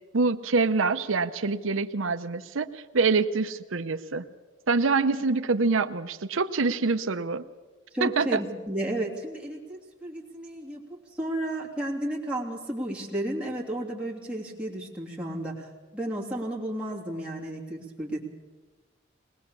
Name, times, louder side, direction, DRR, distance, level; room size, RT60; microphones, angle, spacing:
voice 1, 0.1-4.2 4.7-7.4 8.0-8.4, right 4 dB, 90° right, 9 dB, 0.8 m, -25 dB
voice 2, 7.9-18.2, right 1 dB, 5° right, -4 dB, 3.1 m, -33 dB
21.5 x 20.0 x 7.0 m, 1.2 s
head